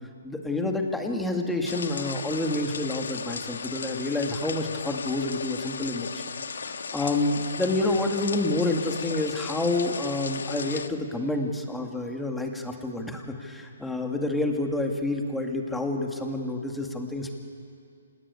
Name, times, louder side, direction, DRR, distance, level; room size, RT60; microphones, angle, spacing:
voice 1, 0.2-6.2 6.7-17.3, left 2 dB, 5° left, 2 dB, 2.1 m, -28 dB
sound 1, 1.7-10.9, left 5 dB, 80° left, 1.6 m, -36 dB
28.0 x 17.5 x 9.8 m, 2.3 s
hypercardioid pair, 160°, 0 cm